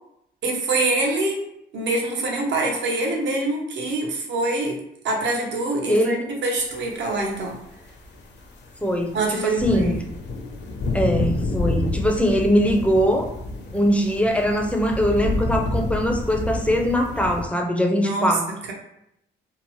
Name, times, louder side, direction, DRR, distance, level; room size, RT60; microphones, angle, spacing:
voice 1, 0.4-1.5 1.7-7.6 9.1-10.0 18.0-18.7, right 2 dB, 65° right, 0 dB, 0.7 m, -25 dB
sound 1, 7.1-7.2 7.7-17.5, left 2 dB, 60° left, 0.6 m, -29 dB
voice 2, 8.8-10.0 10.9-13.3 13.7-18.5, equal, 5° left, 3 dB, 0.4 m, -21 dB
2.8 x 2.0 x 3.0 m, 0.77 s
cardioid pair, 90°, 20 cm